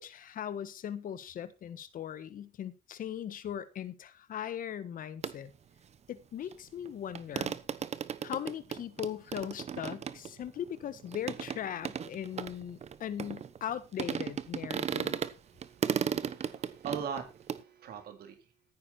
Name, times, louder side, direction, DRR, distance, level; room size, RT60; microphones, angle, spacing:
voice 1, 0.0-5.5 6.1-7.6 8.2-15.2, left 9 dB, 55° left, 1.4 m, -39 dB
sound 1, 5.2-5.3 6.5-6.6 6.8-6.9 7.1-13.7 14.0-15.3 15.6-17.6, right 7 dB, 40° right, 1.0 m, -35 dB
voice 2, 15.1-18.4, right 7 dB, 65° right, 3.4 m, -42 dB
15.0 x 9.6 x 4.4 m
cardioid pair, 110°, 17 cm